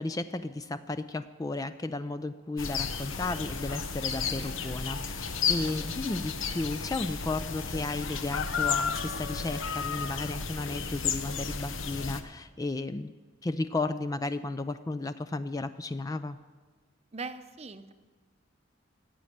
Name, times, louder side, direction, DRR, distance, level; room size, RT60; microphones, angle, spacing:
voice 1, 0.0-13.1 13.4-16.4, left 2 dB, 20° left, 11 dB, 0.4 m, -34 dB
sound 1, 2.6-12.2, left 5 dB, 85° left, 1.0 m, -33 dB
voice 2, 17.1-17.9, right 4 dB, 35° right, 10 dB, 0.7 m, -40 dB
15.0 x 8.5 x 9.2 m, 1.4 s
head